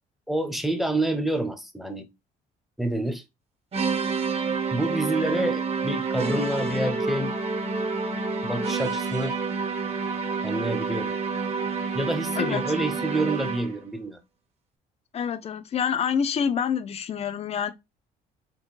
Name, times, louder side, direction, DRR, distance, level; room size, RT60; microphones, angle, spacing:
voice 1, 0.3-2.1 2.8-3.2 4.7-7.3 8.4-9.3 10.4-11.2 11.9-14.2, right 1 dB, ahead, 0.7 m, -28 dB
sound 1, 3.7-13.8, right 4 dB, 35° right, 1.0 m, -28 dB
voice 2, 15.1-17.7, left 7 dB, 35° left, 0.6 m, -27 dB
4.4 x 3.4 x 3.2 m
cardioid pair, 110°, 17 cm